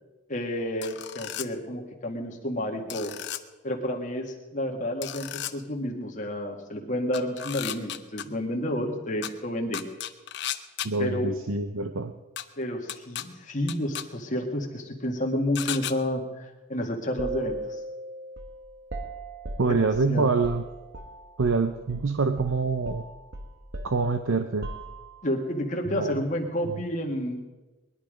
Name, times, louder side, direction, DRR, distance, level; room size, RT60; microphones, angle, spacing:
voice 1, 0.3-3.1 3.6-9.8 11.0-11.3 12.6-17.8 19.6-19.8 20.1-20.3 25.2-27.4, left 1 dB, 40° left, 2 dB, 2.0 m, -30 dB
sound 1, 0.8-1.5 2.9-3.4 5.0-5.5 7.1-8.2 9.2-9.3 9.7-10.9 12.4-12.5 12.9-13.2 13.7-14.0 15.6-15.9, left 11 dB, 60° left, 0.7 m, -34 dB
voice 2, 10.8-12.1 19.6-20.6 21.4-23.0 23.8-24.7 25.9-26.2, right 4 dB, 80° right, 8 dB, 0.7 m, -25 dB
sound 2, 17.2-21.6 21.9-22.1 22.4-25.3, right 2 dB, 55° right, 1.3 m, -38 dB
20.5 x 11.0 x 5.1 m, 1.2 s
head